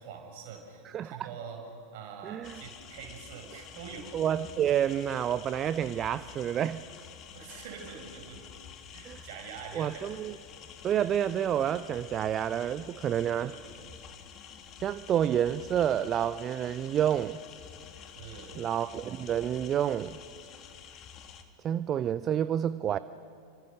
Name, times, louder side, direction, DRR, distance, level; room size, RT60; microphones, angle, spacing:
voice 1, 0.0-1.6 1.9-4.1 7.3-8.4 8.9-10.1 13.1-13.9 18.1-18.6, right 6 dB, 50° right, 1 dB, 6.2 m, -45 dB
voice 2, 2.2-2.6 4.1-6.9 9.1-9.2 9.7-10.3 10.8-13.5 14.8-17.4 18.6-20.2 21.6-23.0, right 10 dB, 30° right, 16 dB, 0.5 m, -29 dB
sound 1, 2.4-21.4, left 8 dB, 35° left, 1.9 m, -49 dB
28.5 x 25.0 x 6.7 m, 2.4 s
figure-of-eight pair, 90°, 0 cm